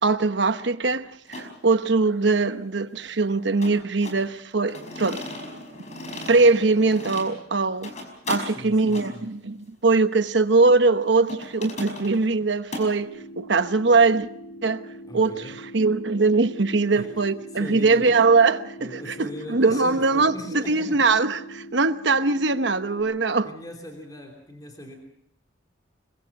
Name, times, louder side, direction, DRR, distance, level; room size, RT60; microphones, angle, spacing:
voice 1, 0.0-5.3 6.3-7.9 8.3-14.3 14.6-14.8 15.1-15.3 15.7-23.5, right 3 dB, 65° right, 1.0 m, -21 dB
sound 1, 1.3-1.5 3.6-4.2 4.7-7.3 7.7-8.5 8.9-9.1 11.3-12.3 12.7-12.9, left 1 dB, 35° left, 5.2 m, -36 dB
voice 2, 8.5-9.3 15.0-15.6 16.9-17.1 17.5-18.1 18.8-21.0 23.4-25.0, left 1 dB, 20° left, 3.1 m, -39 dB
sound 2, 13.0-23.0, equal, 85° left, 7.0 m, -42 dB
25.5 x 23.0 x 5.2 m
head